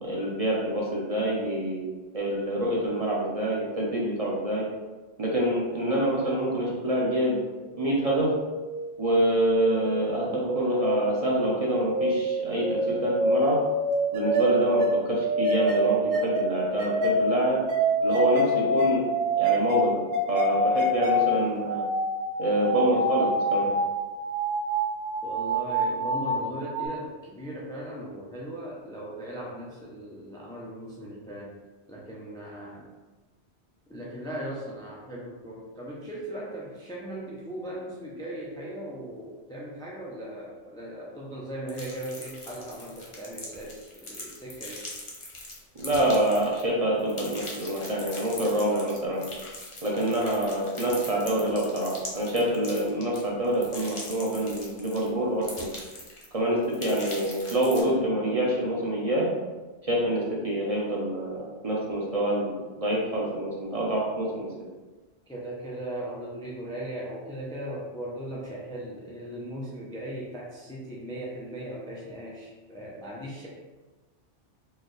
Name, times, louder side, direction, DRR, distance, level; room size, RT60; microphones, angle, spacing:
voice 1, 0.0-1.8 2.1-4.6 5.2-7.4 7.7-8.3 9.0-13.6 14.1-17.6 18.0-19.0 19.4-20.0 20.3-21.8 22.4-23.7 45.8-49.2 49.8-55.7 56.3-59.3 59.8-64.5, right 1 dB, 35° right, -4 dB, 0.7 m, -26 dB
sound 1, 7.7-26.9, equal, 75° right, 1.1 m, -27 dB
voice 2, 25.2-31.5 31.9-32.9 33.9-44.8 65.3-73.5, right 1 dB, 5° left, -5 dB, 0.4 m, -38 dB
sound 2, 41.7-46.7 47.0-55.1 55.4-56.3 56.6-57.8, left 2 dB, 30° left, 0.7 m, -41 dB
4.6 x 2.3 x 3.1 m, 1.2 s
omnidirectional pair, 1.2 m